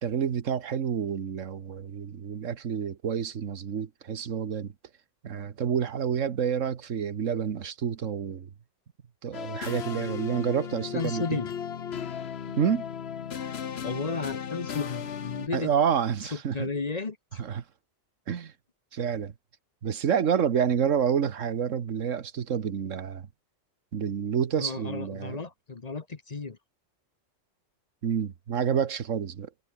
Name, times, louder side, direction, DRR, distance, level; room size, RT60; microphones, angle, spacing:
voice 1, 0.0-4.7 5.2-8.5 9.2-11.2 12.5-12.9 15.5-16.7 17.4-17.6 18.3-18.5 18.9-19.3 19.8-23.3 23.9-25.4 28.0-29.5, right 7 dB, 90° right, 1.6 m, -28 dB
sound 1, 9.3-15.5, left 8 dB, 60° left, 1.2 m, -36 dB
voice 2, 10.9-11.5 13.8-15.7 16.3-17.4 24.6-26.6, left 4 dB, 35° left, 1.1 m, -33 dB
omnidirectional pair, 1.3 m